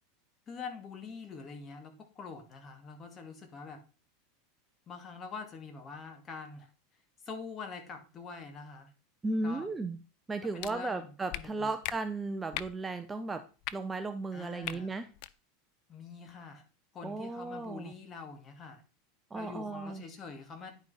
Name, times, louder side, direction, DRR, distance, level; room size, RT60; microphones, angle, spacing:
voice 1, 0.5-3.8 4.9-6.7 7.2-8.9 9.4-9.7 10.5-11.7 14.3-14.9 15.9-16.6 16.9-18.8 19.3-20.8, left 5 dB, 30° left, 4 dB, 2.2 m, -45 dB
voice 2, 9.2-10.0 10.3-13.4 13.7-15.1 17.0-17.9 19.3-20.0, right 3 dB, 15° right, 8 dB, 0.7 m, -35 dB
sound 1, 10.6-10.7 11.3-11.4 11.8-12.0 12.5-12.7 13.6-13.7 14.6-14.8 15.1-15.3, left 16 dB, 60° left, 0.5 m, -37 dB
10.5 x 5.2 x 4.2 m, 0.34 s
supercardioid pair, 120°, 0 cm